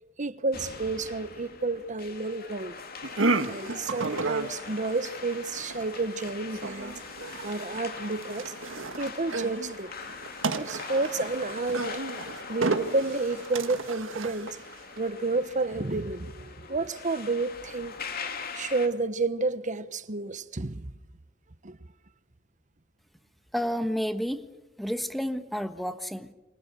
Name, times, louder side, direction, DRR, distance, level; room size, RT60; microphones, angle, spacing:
voice 1, 0.2-2.8 3.5-6.9 7.4-8.5 9.0-9.9 10.6-11.9 12.5-14.6 15.0-18.0 18.5-20.9 21.6-21.8, right 3 dB, 40° right, 1.1 m, -30 dB
sound 1, 0.5-18.9, left 5 dB, 50° left, 2.5 m, -42 dB
sound 2, 3.0-15.0, right 3 dB, 80° right, 1.6 m, -33 dB
voice 2, 23.5-24.4 24.8-26.3, equal, ahead, 1.4 m, -30 dB
28.5 x 26.0 x 6.9 m
head